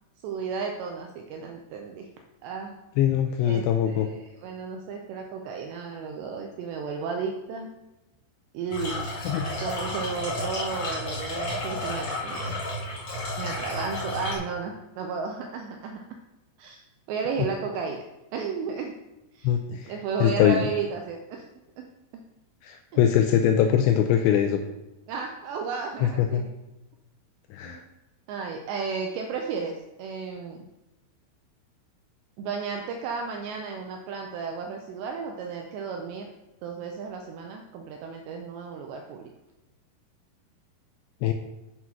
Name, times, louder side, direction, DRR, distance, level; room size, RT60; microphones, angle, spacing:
voice 1, 0.2-2.1 2.4-2.8 3.4-7.7 8.5-9.1 9.6-12.5 13.4-16.0 16.6-18.0 18.3-18.9 19.3-19.6 19.9-21.4 21.8-21.9 22.9-23.0 25.1-26.4 27.6-27.8 28.3-30.7 32.4-36.3 36.6-39.3, right 5 dB, 85° right, 3 dB, 2.5 m, -33 dB
voice 2, 3.0-4.1 9.3-9.4 19.4-20.0 20.2-20.6 22.6-24.6 26.0-26.4 27.5-27.8 41.2-41.3, left 10 dB, 85° left, 6 dB, 2.6 m, -22 dB
sound 1, 8.7-14.3, left 1 dB, 35° left, 2.7 m, -32 dB
8.0 x 6.1 x 5.7 m, 1.0 s
omnidirectional pair, 5.7 m